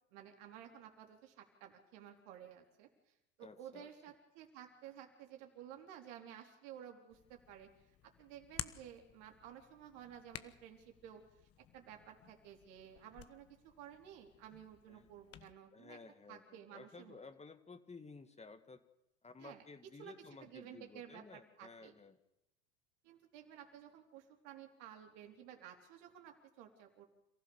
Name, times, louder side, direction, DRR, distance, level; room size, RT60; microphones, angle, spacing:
voice 1, 0.1-2.9 3.4-7.7 8.0-11.2 11.7-16.0 16.3-17.2 19.4-19.6 20.0-20.1 20.4-21.9 23.0-27.1, right 10 dB, 65° right, 4 dB, 3.8 m, -54 dB
voice 2, 3.4-3.9 14.9-15.1 15.7-18.8 19.2-22.2, left 4 dB, 15° left, 9 dB, 1.7 m, -55 dB
Hands, 7.1-15.5, left 11 dB, 35° left, 1.3 m, -53 dB
27.5 x 15.0 x 7.1 m, 0.87 s
hypercardioid pair, 90°, 39 cm